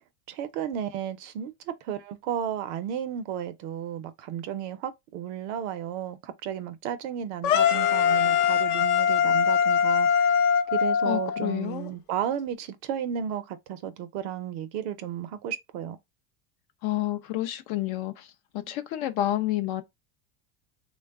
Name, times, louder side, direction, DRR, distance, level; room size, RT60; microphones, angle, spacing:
voice 1, 0.3-1.5 1.8-10.3 10.7-16.0, right 9 dB, 50° right, 0.6 m, -33 dB
sound 1, 7.4-11.5, left 7 dB, 60° left, 0.9 m, -22 dB
voice 2, 11.0-11.9 16.8-19.8, left 14 dB, 45° left, 0.5 m, -29 dB
3.1 x 2.2 x 3.5 m
supercardioid pair, 140°, 48 cm